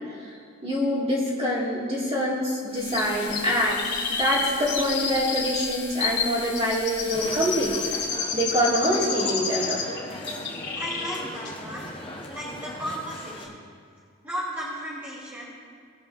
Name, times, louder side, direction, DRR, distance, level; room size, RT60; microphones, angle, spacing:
voice 1, 0.6-3.8 4.1-7.7 8.3-9.8, equal, 25° right, -5 dB, 2.2 m, -25 dB
sound 1, 2.7-8.2, left 5 dB, 75° left, 2.5 m, -40 dB
Chirp tweet, 2.9-10.0 10.3-11.2 11.5-11.6, left 5 dB, 50° left, 2.3 m, -30 dB
sound 2, 7.1-13.5, left 1 dB, 25° left, 1.0 m, -38 dB
voice 2, 10.7-11.9 12.3-13.6 14.2-15.5, equal, 10° right, -9 dB, 1.6 m, -35 dB
19.5 x 7.9 x 2.7 m, 2.2 s
head